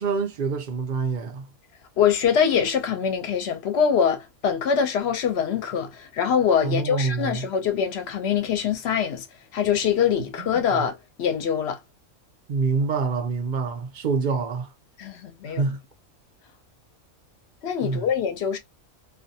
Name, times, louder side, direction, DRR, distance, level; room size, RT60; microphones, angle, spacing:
voice 1, 0.0-1.5 6.6-7.5 10.4-10.8 12.5-14.7 15.5-15.8 17.8-18.0, right 4 dB, 60° right, 0.5 m, -26 dB
voice 2, 2.0-9.3 9.5-11.8 15.0-15.7 17.6-18.6, left 7 dB, 65° left, 0.7 m, -24 dB
2.4 x 2.2 x 2.6 m
omnidirectional pair, 1.5 m